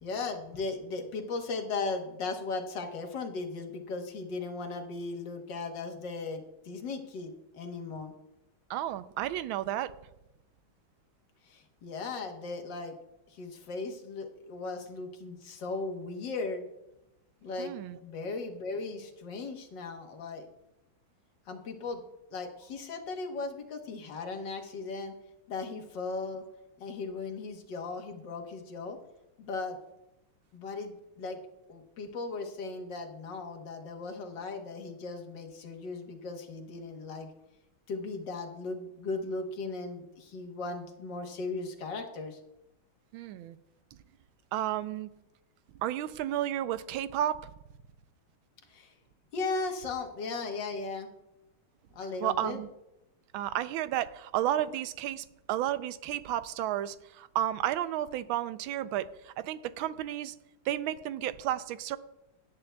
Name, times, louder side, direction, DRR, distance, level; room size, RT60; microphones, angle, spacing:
voice 1, 0.0-8.1 11.4-13.0 13.3-16.7 17.4-17.7 18.0-20.5 21.5-22.0 22.3-25.1 25.5-26.4 26.8-29.0 29.4-29.8 30.5-31.4 31.7-37.3 37.9-42.4 48.7-48.9 49.3-51.1 51.9-52.6, left 3 dB, 65° left, 3 dB, 1.8 m, -37 dB
voice 2, 8.7-9.9 17.6-18.0 43.1-43.6 44.5-45.1 45.8-47.5 52.2-52.7 53.3-60.3 60.7-62.0, right 12 dB, 80° right, 14 dB, 1.4 m, -32 dB
17.5 x 10.5 x 2.3 m, 0.94 s
omnidirectional pair, 2.2 m